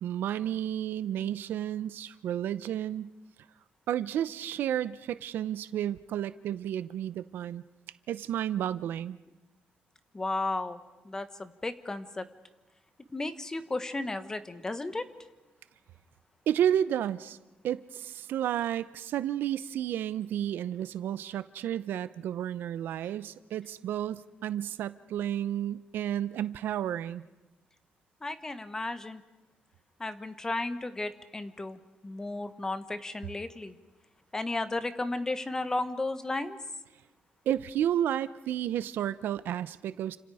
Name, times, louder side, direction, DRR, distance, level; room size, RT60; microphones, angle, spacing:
voice 1, 0.0-3.1 3.9-7.6 8.1-9.2 16.5-17.4 17.6-27.2 37.5-40.2, right 11 dB, 80° right, 15 dB, 0.7 m, -31 dB
voice 2, 10.1-10.8 11.0-12.3 13.1-15.1 28.2-29.2 30.0-33.7 34.3-36.6, left 2 dB, 15° left, 11 dB, 1.3 m, -34 dB
29.5 x 27.0 x 4.9 m, 1.1 s
cardioid pair, 140°, 3 cm